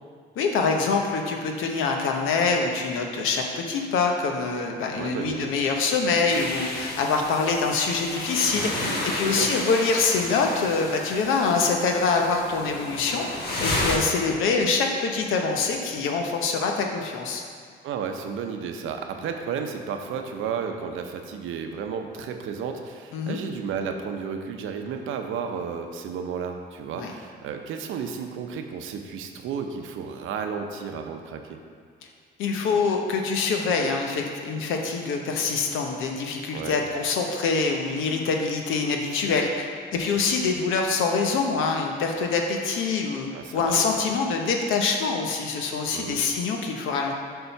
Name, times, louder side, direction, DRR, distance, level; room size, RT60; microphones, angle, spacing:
voice 1, 0.4-13.2 13.6-17.4 23.1-23.4 27.0-27.1 32.4-47.1, left 4 dB, 90° left, 2 dB, 0.8 m, -25 dB
voice 2, 4.9-5.5 8.8-9.6 17.8-31.6 36.5-36.8 43.3-43.8 45.9-46.2, right 6 dB, 85° right, 5 dB, 0.7 m, -33 dB
sound 1, 6.3-14.0, left 1 dB, 55° left, 1.5 m, -32 dB
6.9 x 3.8 x 5.7 m, 2.1 s
cardioid pair, 90°, 20 cm